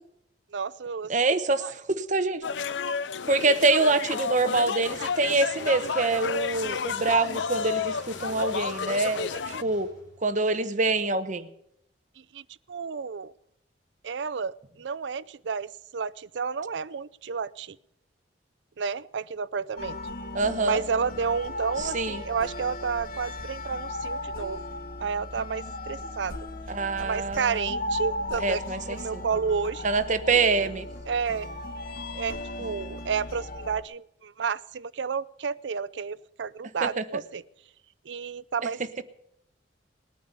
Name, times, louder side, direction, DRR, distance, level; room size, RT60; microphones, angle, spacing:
voice 1, 0.5-1.1 1.6-1.7 9.4-9.6 12.3-13.3 14.0-17.8 18.8-20.0 20.6-24.6 25.0-26.4 27.0-29.8 31.1-31.5 32.1-37.4 38.1-39.0, right 5 dB, 75° right, 18 dB, 0.5 m, -31 dB
voice 2, 1.1-2.4 3.3-9.3 9.6-9.9 10.2-11.5 20.3-20.8 21.8-22.2 26.7-27.7 28.4-29.2 29.8-30.9 36.8-37.0 38.6-38.7, right 3 dB, 45° right, 11 dB, 1.0 m, -25 dB
sound 1, 2.4-9.6, left 6 dB, 80° left, 0.5 m, -31 dB
sound 2, 4.9-10.6, left 1 dB, 20° left, 5.8 m, -47 dB
sound 3, 19.8-33.8, left 1 dB, 50° left, 1.2 m, -36 dB
19.5 x 9.4 x 6.9 m, 0.77 s
head